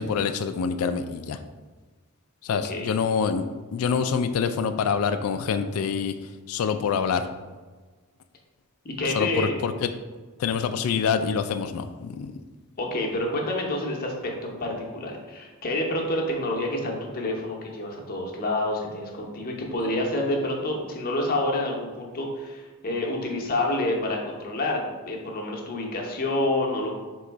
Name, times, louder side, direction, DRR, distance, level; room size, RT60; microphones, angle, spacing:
voice 1, 0.0-1.4 2.4-3.5 3.7-6.1 6.5-7.3 9.1-9.9 10.4-12.4, left 6 dB, 70° left, 9 dB, 0.3 m, -26 dB
voice 2, 2.5-3.0 8.8-9.5 12.8-27.0, left 1 dB, 40° left, 0 dB, 0.8 m, -28 dB
3.8 x 3.0 x 4.5 m, 1.3 s
head